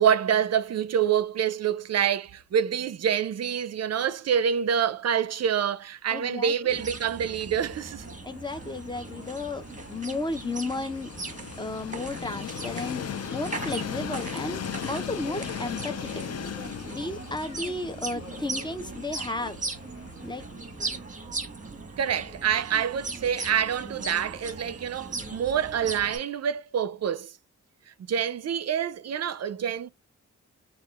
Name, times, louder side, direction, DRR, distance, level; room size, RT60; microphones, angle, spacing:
voice 1, 0.0-8.0 22.0-27.3 28.1-29.9, right 8 dB, 60° right, 0.5 m, -26 dB
voice 2, 6.1-6.8 8.2-11.1 11.6-13.0 13.3-14.6 14.9-16.3 16.9-19.6 20.2-20.5, left 2 dB, 15° left, 0.7 m, -33 dB
sound 1, 6.7-26.2, right 3 dB, 25° right, 1.2 m, -38 dB
Train, 8.0-21.0, left 8 dB, 55° left, 0.5 m, -39 dB
6.3 x 2.4 x 2.4 m
wide cardioid pair, 80°, 30 cm